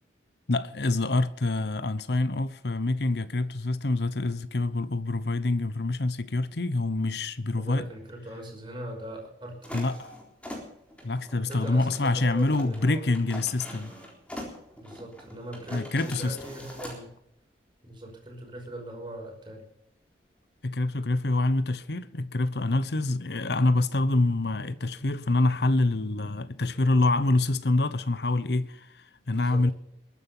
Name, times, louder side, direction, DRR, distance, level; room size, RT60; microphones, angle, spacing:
voice 1, 0.5-7.9 9.7-10.1 11.0-13.9 15.7-16.4 20.6-29.7, left 2 dB, 60° left, 0.9 m, -26 dB
voice 2, 7.5-9.8 11.5-13.2 14.8-17.1 17.8-19.6 29.3-29.6, right 1 dB, 25° right, 5.7 m, -40 dB
sound 1, 9.6-17.0, equal, 5° left, 3.8 m, -43 dB
22.0 x 10.0 x 5.6 m
head